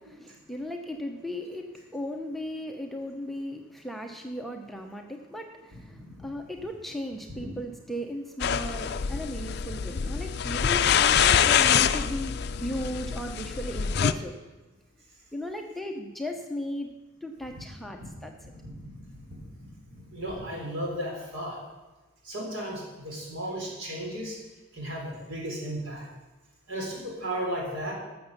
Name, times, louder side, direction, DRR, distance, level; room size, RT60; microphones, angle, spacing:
voice 1, 0.0-14.4 15.3-16.9 17.2-18.3, equal, ahead, 3 dB, 0.7 m, -36 dB
voice 2, 5.9-6.3 17.6-17.7 18.0-18.1 18.4-21.6 22.2-24.4 24.7-26.0 26.7-27.9, right 1 dB, 75° right, -2 dB, 4.0 m, -35 dB
sound 1, 8.4-14.1, left 8 dB, 50° left, 0.4 m, -25 dB
12.5 x 7.0 x 6.7 m, 1.1 s
head